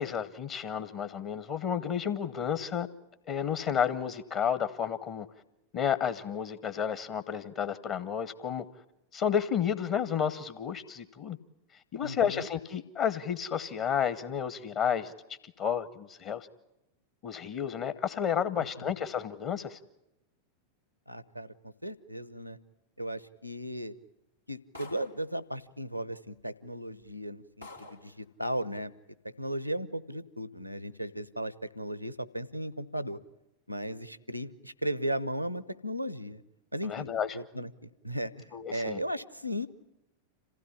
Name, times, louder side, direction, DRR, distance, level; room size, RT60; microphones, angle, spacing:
voice 1, 0.0-2.9 3.3-5.3 5.7-8.6 9.1-11.4 11.9-15.1 15.6-16.5 17.2-19.8 36.8-37.3 38.5-39.0, left 8 dB, 40° left, 12 dB, 0.9 m, -31 dB
voice 2, 12.0-12.5 18.6-18.9 21.1-22.6 23.0-23.9 24.5-28.9 29.2-33.2 33.7-36.4 36.7-37.1 37.3-39.7, equal, 90° right, 17 dB, 0.8 m, -36 dB
sound 1, 24.7-25.3 26.3-26.4 27.0-27.1 27.6-28.1, left 2 dB, 90° left, 2.1 m, -48 dB
27.0 x 16.0 x 9.9 m, 0.91 s
figure-of-eight pair, 90°, 0 cm